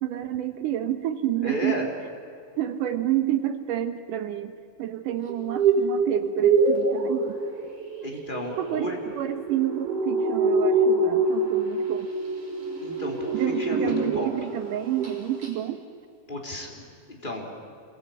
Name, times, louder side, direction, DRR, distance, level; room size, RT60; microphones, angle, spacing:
voice 1, 0.0-1.9 2.6-7.3 8.6-12.1 13.3-15.8, right 12 dB, 70° right, 9 dB, 2.2 m, -29 dB
voice 2, 1.4-1.9 8.0-9.0 12.8-14.3 16.3-17.4, left 1 dB, 15° left, 1 dB, 3.4 m, -33 dB
sound 1, 5.3-14.5 14.8-15.2 15.4-15.5, right 3 dB, 55° right, 7.0 m, -25 dB
27.0 x 22.5 x 8.7 m, 2.4 s
omnidirectional pair, 4.4 m